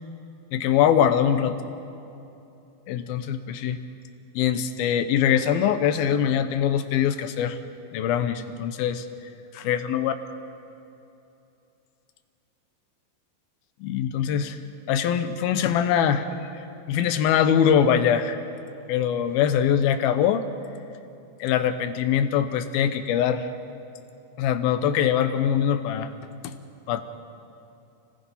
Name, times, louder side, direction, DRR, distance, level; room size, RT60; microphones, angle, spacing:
voice 1, 0.5-1.6 2.9-3.8 4.4-7.6 7.9-9.1 9.5-10.1 13.8-14.6 14.9-16.5 16.9-18.4 18.9-20.4 21.4-23.5 24.4-26.1 26.9-27.0, left 9 dB, 85° left, 10 dB, 2.9 m, -23 dB
30.0 x 18.5 x 5.6 m, 2.7 s
omnidirectional pair, 4.2 m